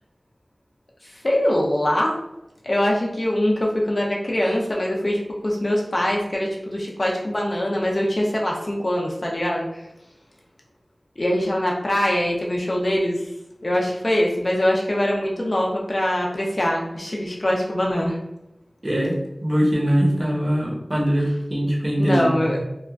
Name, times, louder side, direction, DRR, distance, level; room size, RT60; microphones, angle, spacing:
voice 1, 1.0-2.2 2.6-9.9 11.2-13.3 13.6-18.2 22.0-22.6, left 1 dB, 50° left, -2 dB, 0.5 m, -23 dB
voice 2, 18.8-22.6, equal, 40° right, -3 dB, 0.8 m, -22 dB
2.8 x 2.3 x 2.4 m, 0.90 s
wide cardioid pair, 45°, 0 cm